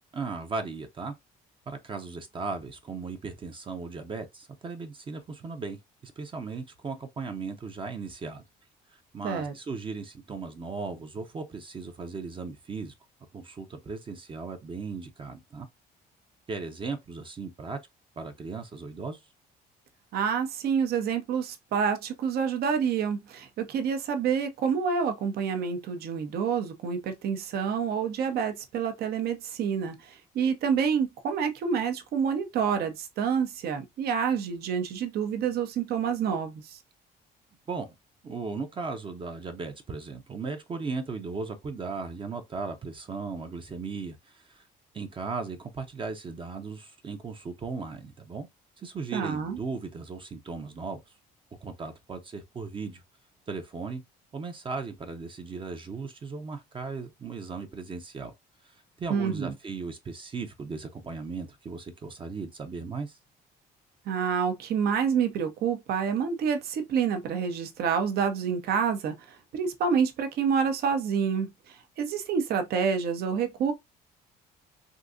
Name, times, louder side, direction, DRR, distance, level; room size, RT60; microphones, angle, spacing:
voice 1, 0.1-1.1 1.7-8.4 9.1-12.9 13.3-15.7 16.5-17.8 18.2-19.2 37.7-37.9 38.2-44.6 44.9-48.5 48.8-51.0 51.6-53.0 53.5-54.0 54.3-58.3 58.6-63.2, right 4 dB, 30° right, 0.6 m, -37 dB
voice 2, 20.1-36.8 49.1-49.6 59.1-59.5 64.1-73.7, right 6 dB, 65° right, 0.8 m, -28 dB
3.7 x 2.7 x 2.5 m
cardioid pair, 110°, 17 cm